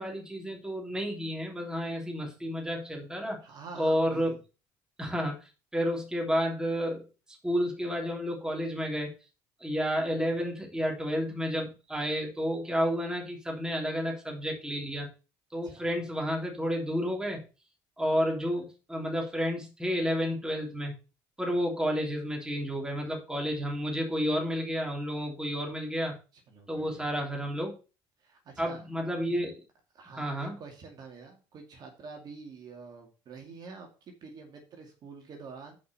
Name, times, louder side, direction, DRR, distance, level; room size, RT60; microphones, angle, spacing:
voice 1, 0.0-3.4 3.8-4.3 5.0-7.0 7.4-9.1 9.6-15.1 15.5-17.4 18.0-20.9 21.4-26.2 26.7-27.7 28.6-29.6 30.1-30.5, equal, 10° right, 0 dB, 3.2 m, -31 dB
voice 2, 3.4-4.4 15.6-15.8 26.5-27.1 28.2-28.8 29.9-35.8, right 4 dB, 45° right, 2 dB, 2.2 m, -47 dB
6.4 x 5.4 x 6.7 m, 0.33 s
supercardioid pair, 100°, 9 cm